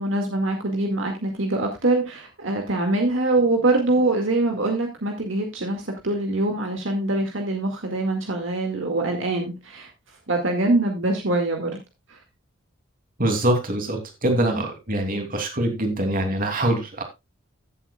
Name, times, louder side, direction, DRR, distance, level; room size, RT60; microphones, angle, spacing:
voice 1, 0.0-9.9 10.3-11.7 12.1-12.2, right 2 dB, 70° right, 2 dB, 2.1 m, -24 dB
voice 2, 13.2-17.0, right 1 dB, 45° right, 4 dB, 2.9 m, -24 dB
15.5 x 8.0 x 2.3 m, 0.23 s
head